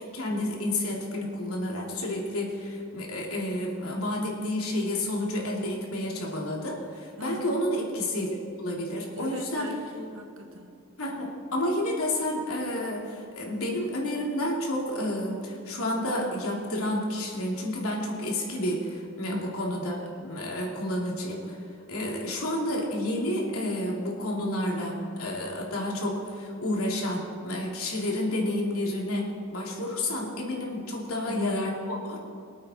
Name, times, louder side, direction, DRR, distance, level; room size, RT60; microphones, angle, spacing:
voice 1, 0.0-9.7 11.0-21.6 21.9-32.2, left 1 dB, 90° left, -1 dB, 2.9 m, -30 dB
voice 2, 7.2-7.7 9.1-10.7 19.3-19.6 31.2-31.7, equal, 70° right, 3 dB, 1.9 m, -39 dB
24.5 x 8.5 x 4.3 m, 2.4 s
head